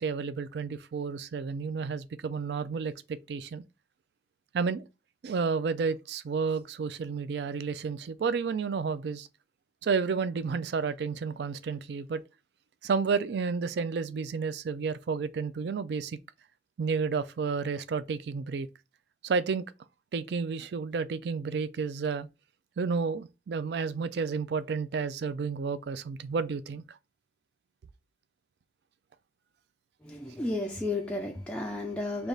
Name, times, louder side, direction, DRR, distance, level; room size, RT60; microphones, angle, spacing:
voice 1, 0.0-2.9 3.3-3.6 4.5-4.8 5.2-9.3 9.8-12.2 12.8-16.2 16.8-18.7 19.2-19.6 20.1-22.3 22.8-26.8, right 5 dB, 70° right, 0.4 m, -31 dB
voice 2, 30.0-32.3, left 2 dB, 5° left, 0.3 m, -33 dB
3.3 x 2.4 x 3.9 m
head